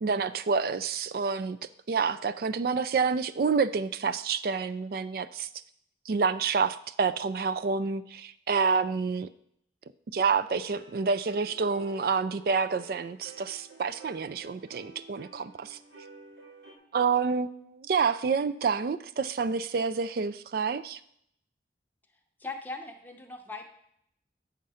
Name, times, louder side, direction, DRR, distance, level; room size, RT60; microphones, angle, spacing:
voice 1, 0.0-1.6 1.9-5.5 6.1-9.3 10.1-15.8 16.9-21.0, right 5 dB, 55° right, 13 dB, 0.3 m, -28 dB
sound 1, 10.5-16.8, right 1 dB, 85° right, 2.4 m, -51 dB
voice 2, 22.4-23.6, left 3 dB, 10° left, 3 dB, 0.7 m, -39 dB
8.7 x 3.7 x 5.5 m, 0.71 s
head